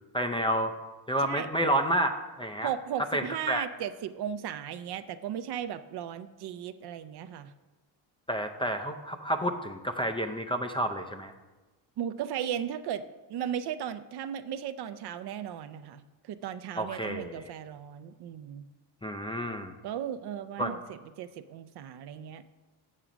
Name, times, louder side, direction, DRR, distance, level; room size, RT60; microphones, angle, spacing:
voice 1, 0.1-0.8 1.1-2.1 2.4-2.7 3.1-3.7 8.3-11.3 16.8-17.5 19.0-19.7 20.6-20.7, right 1 dB, 10° left, 3 dB, 0.4 m, -30 dB
voice 2, 1.2-1.5 2.6-7.5 12.0-13.0 13.3-18.7 19.8-22.5, right 9 dB, 55° right, 11 dB, 0.5 m, -36 dB
7.5 x 6.8 x 5.0 m, 1.2 s
cardioid pair, 110°, 47 cm